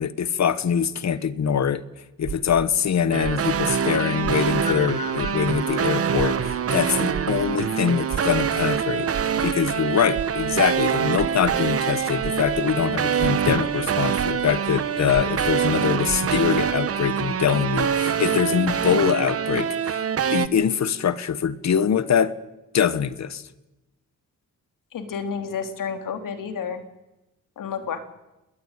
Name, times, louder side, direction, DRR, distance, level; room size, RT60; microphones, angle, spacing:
voice 1, 0.0-1.8 2.2-20.0 20.3-22.3 22.7-23.4, left 8 dB, 55° left, 14 dB, 1.5 m, -23 dB
sound 1, 2.2-4.9 5.2-12.7 13.1-16.6, right 7 dB, 70° right, 3.8 m, -37 dB
sound 2, 3.1-20.5, right 8 dB, 45° right, 1.1 m, -25 dB
Train, 4.6-19.8, left 3 dB, 20° left, 2.3 m, -43 dB
voice 2, 24.9-26.8 27.6-28.0, left 6 dB, 70° left, 7 dB, 3.3 m, -30 dB
29.5 x 21.0 x 9.2 m, 1.0 s
wide cardioid pair, 140°, 33 cm